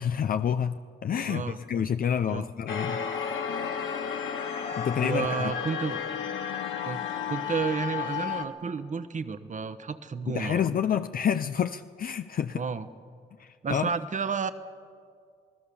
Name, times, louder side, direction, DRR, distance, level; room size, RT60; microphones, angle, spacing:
voice 1, 0.0-3.0 4.8-5.5 10.3-12.6 13.4-13.9, left 8 dB, 45° left, 9 dB, 0.6 m, -28 dB
voice 2, 1.3-1.6 2.3-2.5 5.0-6.0 6.8-7.0 7.3-10.6 12.6-12.9 13.6-14.5, right 5 dB, 40° right, 12 dB, 1.2 m, -31 dB
sound 1, 2.7-8.4, left 7 dB, 75° left, 2.0 m, -32 dB
27.5 x 19.0 x 7.1 m, 2.2 s
cardioid pair, 90°, 20 cm